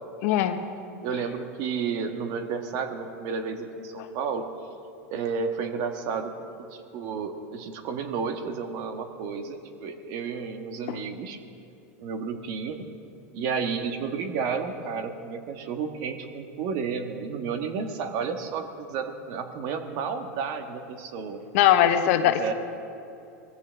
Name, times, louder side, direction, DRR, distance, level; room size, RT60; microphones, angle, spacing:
voice 1, 0.2-0.6 10.9-11.0 21.5-22.5, left 11 dB, 65° left, 8 dB, 1.1 m, -21 dB
voice 2, 1.0-4.5 5.1-6.3 6.9-11.4 12.0-12.9 13.3-21.4 22.3-22.5, right 5 dB, 55° right, 6 dB, 1.5 m, -31 dB
20.5 x 15.0 x 3.5 m, 2.6 s
supercardioid pair, 115°, 8 cm